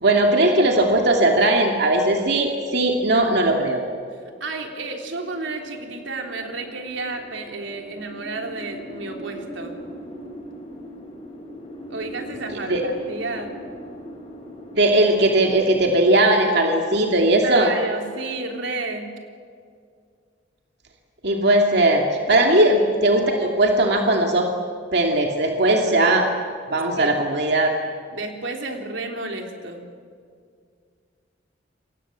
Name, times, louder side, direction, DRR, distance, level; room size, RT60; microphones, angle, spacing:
voice 1, 0.0-3.8 12.7-12.8 14.7-17.7 21.2-24.5 24.9-26.3 26.7-27.7, right 1 dB, 65° right, 1 dB, 2.6 m, -18 dB
voice 2, 4.1-9.8 11.9-13.6 17.4-19.1 22.5-22.6 27.0-27.1 28.1-29.9, right 3 dB, 85° right, 3 dB, 3.5 m, -31 dB
sound 1, 4.8-15.0, equal, 30° left, 4.8 m, -40 dB
29.0 x 24.5 x 7.5 m, 2.2 s
head